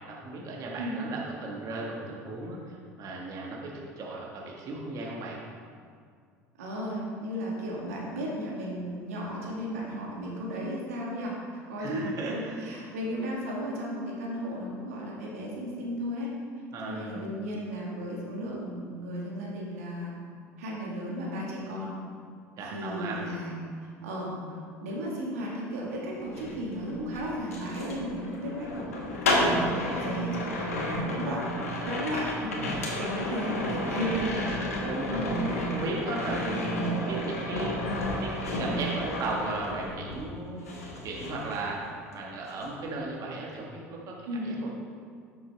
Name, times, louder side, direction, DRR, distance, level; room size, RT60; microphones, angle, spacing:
voice 1, 0.1-5.4 11.8-12.6 16.7-17.1 22.6-23.2 32.6-32.9 33.5-34.0 34.8-37.8 38.2-40.8 41.0-41.8 42.1-44.1 44.4-44.7, right 2 dB, 50° right, -3 dB, 1.7 m, -36 dB
voice 2, 6.6-16.3 16.8-20.2 20.6-21.9 22.7-23.5 24.0-24.4 24.8-31.4 31.8-34.4 35.0-35.3 44.3-44.6, equal, 80° right, -4 dB, 1.9 m, -34 dB
sound 1, 26.2-40.3 40.6-42.1 42.4-42.7, left 1 dB, 85° left, 1.3 m, -32 dB
10.5 x 6.8 x 3.5 m, 2.1 s
hypercardioid pair, 70°, 8 cm